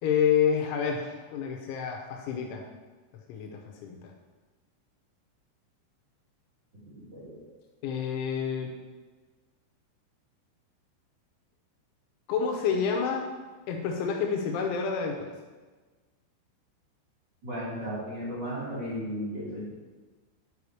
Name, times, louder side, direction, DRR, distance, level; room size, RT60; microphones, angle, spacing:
voice 1, 0.0-2.7 3.3-4.0 7.8-8.7 12.3-13.3 13.7-15.3, left 7 dB, 85° left, 2 dB, 2.9 m, -28 dB
voice 2, 7.1-7.4 17.4-19.7, equal, 35° right, -9 dB, 1.8 m, -35 dB
8.5 x 4.8 x 4.7 m, 1.3 s
omnidirectional pair, 5.9 m